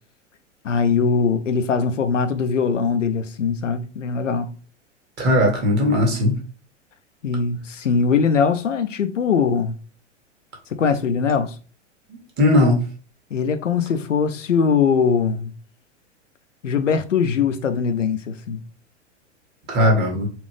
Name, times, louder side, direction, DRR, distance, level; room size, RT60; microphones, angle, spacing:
voice 1, 0.6-4.5 7.2-9.8 10.7-11.6 13.3-15.5 16.6-18.6, left 6 dB, 85° left, 0.5 m, -21 dB
voice 2, 5.2-6.3 12.4-12.8 19.7-20.3, left 1 dB, 30° right, 1.5 m, -17 dB
4.2 x 2.5 x 3.2 m
figure-of-eight pair, 95°, 37 cm